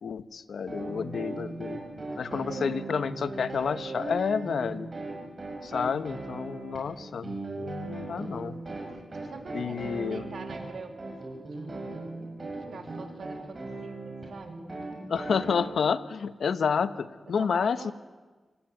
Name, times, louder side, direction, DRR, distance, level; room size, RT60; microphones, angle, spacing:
voice 1, 0.0-1.8 2.2-4.9 5.6-8.6 9.5-10.2 15.1-17.9, left 6 dB, 80° left, 13 dB, 1.0 m, -30 dB
sound 1, 0.7-15.6, right 2 dB, 35° right, 6.4 m, -38 dB
voice 2, 2.3-2.9 8.9-11.9 12.5-14.6 17.4-17.9, right 5 dB, 65° right, 6 dB, 2.7 m, -45 dB
25.5 x 17.5 x 9.3 m, 1.3 s
wide cardioid pair, 145°, 0 cm